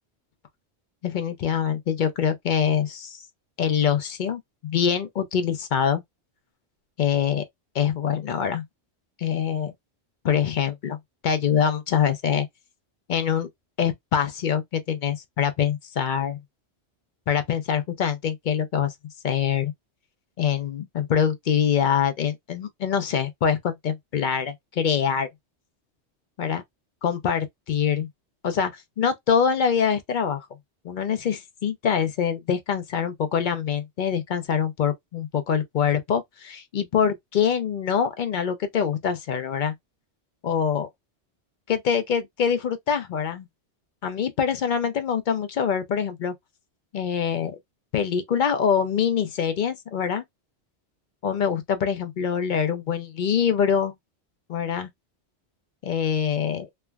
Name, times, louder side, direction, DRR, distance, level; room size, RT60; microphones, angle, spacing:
voice 1, 1.0-3.2 3.6-6.0 7.0-7.4 7.7-8.6 9.2-9.7 10.2-11.0 11.2-12.5 13.1-13.5 13.8-16.4 17.3-18.9 19.2-19.7 20.4-25.3 26.4-26.6 27.0-28.1 28.4-30.5 30.8-39.7 40.4-40.9 41.7-43.5 44.0-46.3 46.9-47.6 47.9-50.2 51.2-53.9 54.5-54.9 55.8-56.7, left 7 dB, 55° left, 0.5 m, -24 dB
3.2 x 2.1 x 2.2 m
omnidirectional pair, 1.2 m